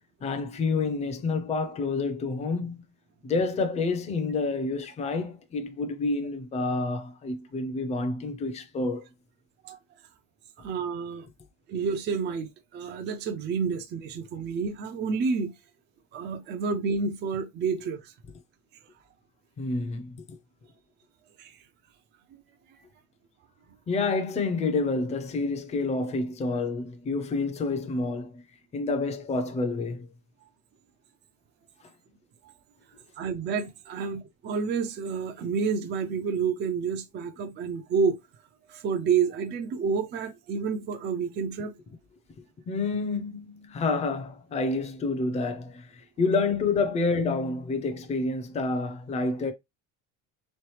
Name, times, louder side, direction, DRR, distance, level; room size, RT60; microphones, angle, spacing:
voice 1, 0.2-2.7 3.2-9.1 19.6-20.4 23.9-28.4 28.7-30.1 42.4-49.5, left 3 dB, 20° left, 0.6 m, -28 dB
voice 2, 10.6-11.3 11.7-15.6 16.1-18.1 21.4-21.6 32.4-32.5 33.2-38.2 38.7-41.8, right 5 dB, 35° right, 0.5 m, -29 dB
3.7 x 3.2 x 3.1 m
cardioid pair, 145°, 32 cm